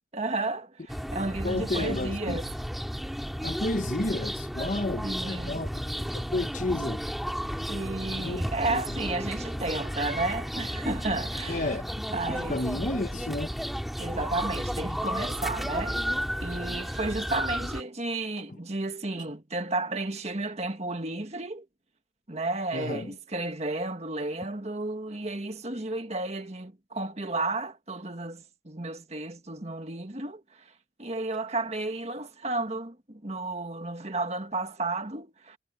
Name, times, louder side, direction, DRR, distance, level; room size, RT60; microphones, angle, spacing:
voice 1, 0.1-0.8 1.1-2.5 5.0-5.6 7.7-11.7 12.1-12.6 14.0-21.7 22.3-30.6 31.0-35.6, right 2 dB, 35° right, 1.7 m, -32 dB
sound 1, 0.9-17.8, equal, ahead, 2.7 m, -33 dB
voice 2, 1.4-2.4 3.4-5.8 6.1-7.1 8.1-8.4 8.7-9.0 11.5-11.9 12.3-13.6 18.5-18.6 19.1-19.2 22.7-23.1, left 2 dB, 45° left, 1.2 m, -32 dB
head